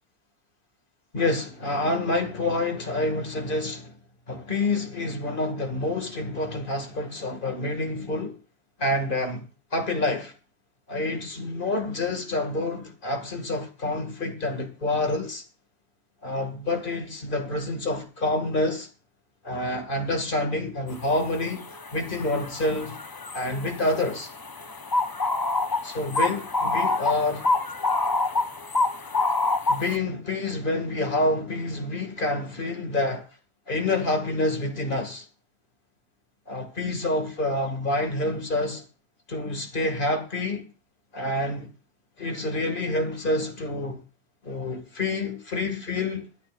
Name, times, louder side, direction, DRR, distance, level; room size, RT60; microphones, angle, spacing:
voice 1, 1.1-3.9 4.3-8.4 8.8-9.5 9.7-10.3 10.9-15.4 16.2-18.9 19.4-21.6 21.9-23.0 23.3-24.3 25.8-27.5 29.7-33.2 33.7-35.2 36.5-38.8 39.3-40.7 41.1-41.7 42.2-44.0 44.4-46.3, left 2 dB, 45° left, 2.3 m, -27 dB
sound 1, 21.1-21.2 21.6-30.0, left 3 dB, 25° left, 0.5 m, -27 dB
23.5 x 8.8 x 2.5 m
omnidirectional pair, 1.2 m